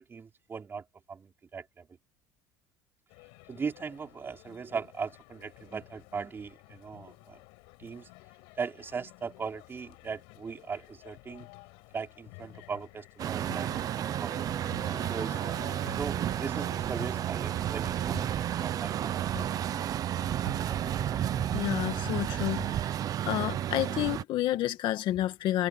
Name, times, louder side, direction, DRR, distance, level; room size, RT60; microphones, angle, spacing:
voice 1, 0.0-1.9 3.5-7.4 7.8-8.1 8.6-11.5 11.9-14.4 14.8-15.4 16.0-19.5, right 5 dB, 25° right, 4.2 m, -39 dB
sound 1, 3.1-22.8, left 30 dB, 75° left, 5.7 m, -50 dB
Truck, 13.2-24.2, right 11 dB, 40° right, 0.8 m, -32 dB
voice 2, 21.5-22.9 23.3-25.7, left 14 dB, 55° left, 2.0 m, -30 dB
cardioid pair, 130°, 10 cm